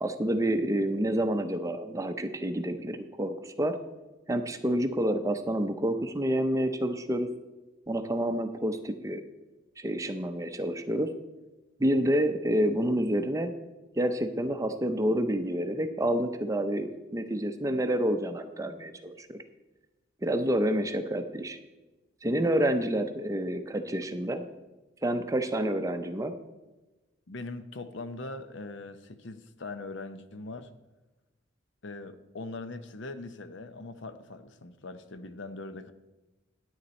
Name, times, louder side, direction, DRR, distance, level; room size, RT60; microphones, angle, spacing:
voice 1, 0.0-3.8 4.3-7.3 7.9-9.2 9.8-11.1 11.8-13.5 14.0-19.4 20.2-21.6 22.2-24.4 25.0-26.3, right 1 dB, 15° right, 7 dB, 0.5 m, -28 dB
voice 2, 27.3-30.7 31.8-35.9, left 2 dB, 65° left, 11 dB, 0.7 m, -41 dB
9.6 x 9.5 x 4.3 m, 1.1 s
head